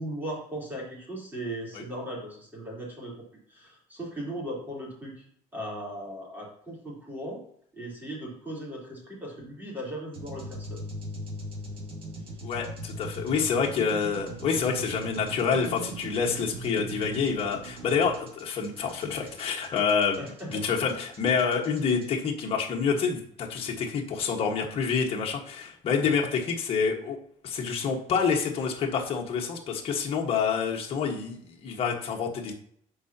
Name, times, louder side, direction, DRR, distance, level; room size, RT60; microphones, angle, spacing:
voice 1, 0.0-5.2 5.5-7.4 7.7-10.8 20.1-20.6 26.0-26.1, right 1 dB, 15° right, -5 dB, 3.7 m, -38 dB
sound 1, 10.1-22.0, right 2 dB, 40° right, 2.2 m, -40 dB
voice 2, 12.4-20.2 20.5-27.2 27.4-32.5, left 6 dB, 40° left, 0 dB, 1.6 m, -27 dB
13.5 x 5.0 x 2.9 m, 0.64 s
cardioid pair, 140°, 14 cm